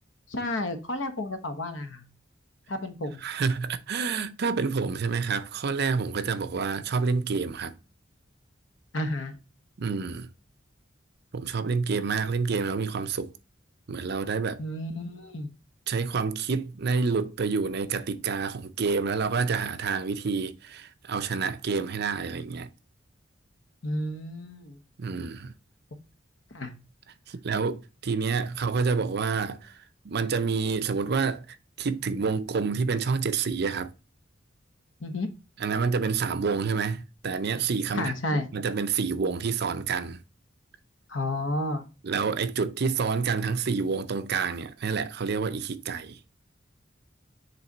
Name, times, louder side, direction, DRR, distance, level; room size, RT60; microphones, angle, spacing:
voice 1, 0.3-2.0 2.7-3.2 8.9-9.4 14.6-15.5 23.8-24.8 26.5-26.7 35.0-35.3 37.9-38.5 41.1-41.8, left 1 dB, 75° left, 1.0 m, -31 dB
voice 2, 3.2-7.8 9.8-10.3 11.3-13.3 13.9-14.6 15.9-22.7 25.0-25.5 27.3-29.8 30.0-33.9 35.6-40.2 42.0-46.2, right 5 dB, 55° right, 0.5 m, -28 dB
7.5 x 3.3 x 3.9 m
head